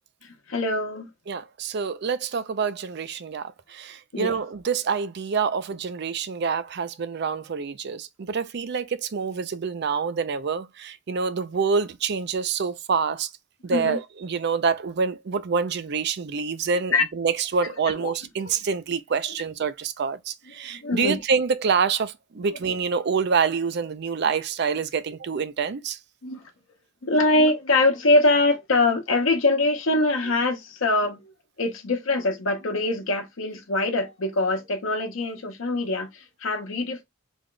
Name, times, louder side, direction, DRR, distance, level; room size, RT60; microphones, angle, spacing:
voice 1, 0.5-1.1 4.1-4.4 13.7-14.0 16.9-17.0 18.0-18.1 20.8-21.2 26.2-26.4 27.0-31.2 31.6-36.1 36.4-37.0, left 2 dB, 90° left, 0.8 m, -23 dB
voice 2, 1.3-13.3 13.6-26.0, right 5 dB, 55° right, 0.5 m, -26 dB
3.4 x 2.2 x 3.7 m
head